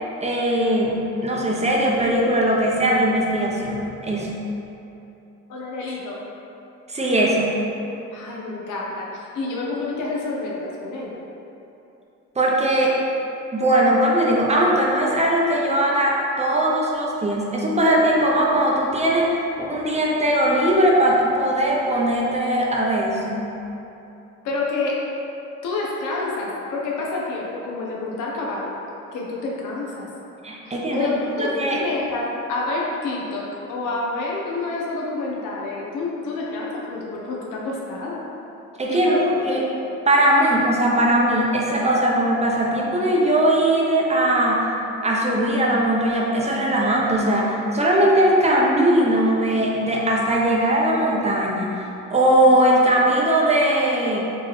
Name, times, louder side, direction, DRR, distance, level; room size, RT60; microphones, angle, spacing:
voice 1, 0.2-4.4 6.9-7.6 12.4-12.9 13.5-23.5 30.4-31.1 31.4-31.8 38.8-39.6 40.1-44.7 45.0-51.7 52.1-54.2, right 1 dB, 20° right, -3 dB, 0.6 m, -20 dB
voice 2, 5.5-6.2 8.1-11.2 24.4-25.0 25.6-28.8 29.1-30.1 30.7-38.2 38.9-39.4, left 3 dB, 85° left, -3 dB, 0.8 m, -28 dB
4.3 x 3.0 x 3.1 m, 3.0 s
cardioid pair, 90°, 30 cm